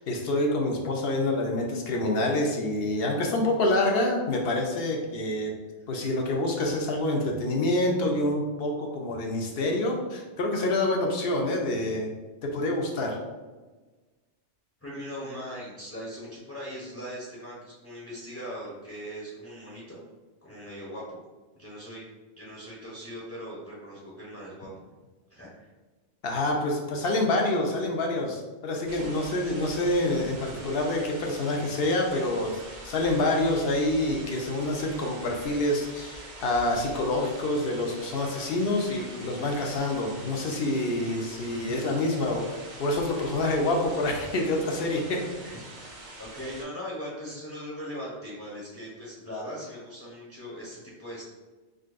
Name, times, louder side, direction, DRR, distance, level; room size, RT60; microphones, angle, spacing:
voice 1, 0.0-5.5 5.9-12.1 12.4-13.2 26.2-45.2, left 1 dB, 65° left, 1 dB, 0.7 m, -27 dB
voice 2, 14.8-20.0 20.4-21.2 21.6-22.1 22.4-24.7 25.3-25.7 45.4-51.2, equal, 15° left, -6 dB, 0.6 m, -40 dB
sound 1, 28.9-46.6, right 1 dB, 50° right, 0.8 m, -44 dB
3.8 x 2.6 x 2.4 m, 1.3 s
omnidirectional pair, 1.2 m